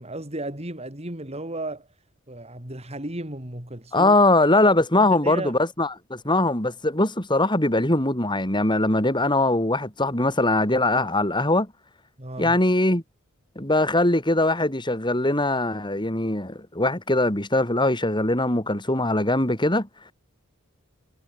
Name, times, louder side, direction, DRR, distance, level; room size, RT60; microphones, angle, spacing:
voice 1, 0.0-1.9 2.3-4.1 4.9-5.6 12.2-12.6, right 1 dB, 30° right, 4.1 m, -34 dB
voice 2, 3.9-11.7 12.4-13.0 13.6-19.9, left 2 dB, 20° left, 4.3 m, -21 dB
head